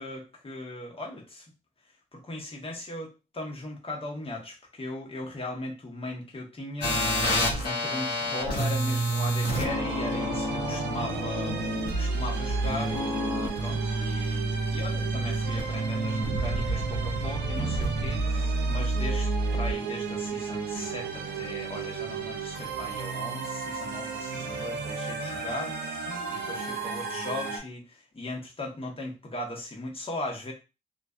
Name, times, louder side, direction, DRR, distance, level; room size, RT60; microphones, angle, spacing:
voice 1, 0.0-1.5 2.1-30.5, left 2 dB, 35° left, -1 dB, 1.0 m, -38 dB
sound 1, 6.8-19.7, right 1 dB, 70° left, 1.2 m, -28 dB
sound 2, 9.5-27.6, right 5 dB, 75° right, 0.5 m, -35 dB
2.4 x 2.2 x 2.4 m, 0.29 s
supercardioid pair, 50°, 17 cm